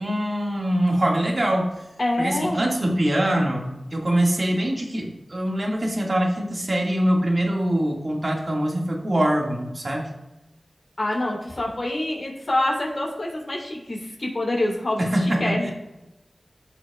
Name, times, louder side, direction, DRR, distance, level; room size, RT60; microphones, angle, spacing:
voice 1, 0.0-1.7 2.2-10.1 15.0-15.7, right 1 dB, 50° right, -1 dB, 1.9 m, -23 dB
voice 2, 2.0-2.6 11.0-15.7, left 1 dB, 55° left, -2 dB, 3.2 m, -26 dB
15.5 x 5.8 x 2.4 m, 1.0 s
cardioid pair, 45°, 0 cm